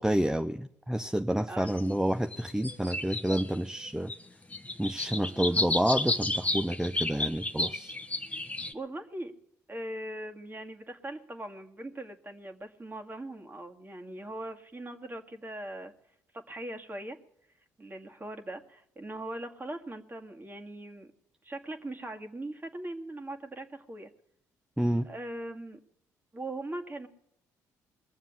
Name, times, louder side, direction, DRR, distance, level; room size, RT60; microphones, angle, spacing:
voice 1, 0.0-4.1 4.8-7.9 24.8-25.1, right 1 dB, 5° right, 7 dB, 0.8 m, -29 dB
sound 1, 1.7-1.8 2.3-3.8 4.1-4.2 4.5-8.7, left 2 dB, 15° left, 1.1 m, -32 dB
voice 2, 5.2-5.7 8.7-9.3 9.7-15.9 16.3-17.2 17.8-21.1 21.4-24.1 25.0-25.8 26.3-27.1, right 1 dB, 25° right, 4 dB, 2.0 m, -40 dB
21.5 x 7.3 x 8.2 m, 0.73 s
hypercardioid pair, 50°, 8 cm